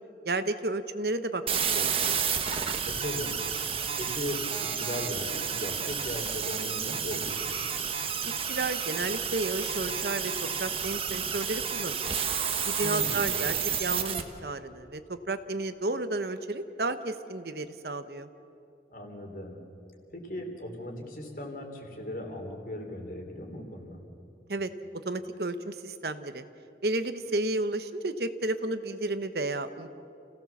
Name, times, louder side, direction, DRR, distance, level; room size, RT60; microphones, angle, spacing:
voice 1, 0.2-2.2 8.2-12.2 12.6-18.3 24.5-24.7 25.0-26.4 26.8-29.9, right 2 dB, 60° right, 10 dB, 1.0 m, -32 dB
sound 1, 1.5-14.2, right 7 dB, 30° right, 1.3 m, -31 dB
voice 2, 2.8-3.3 3.7-7.6 12.8-13.3 18.9-19.6 20.1-24.0, left 1 dB, 50° left, 3 dB, 3.4 m, -38 dB
29.0 x 17.0 x 7.2 m, 2.7 s
head